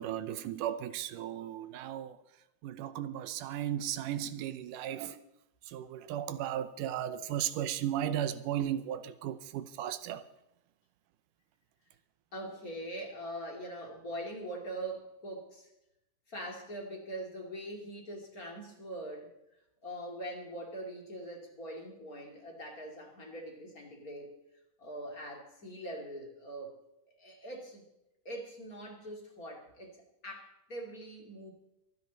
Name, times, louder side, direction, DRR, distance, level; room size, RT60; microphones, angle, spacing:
voice 1, 0.0-2.2 2.6-5.2 5.7-10.2, right 11 dB, 85° right, 2.4 m, -35 dB
voice 2, 12.3-15.7 16.3-19.3 19.8-24.4 24.8-26.7 27.1-27.8 28.2-31.5, right 1 dB, 30° left, 2.7 m, -42 dB
24.0 x 10.0 x 4.0 m
omnidirectional pair, 3.6 m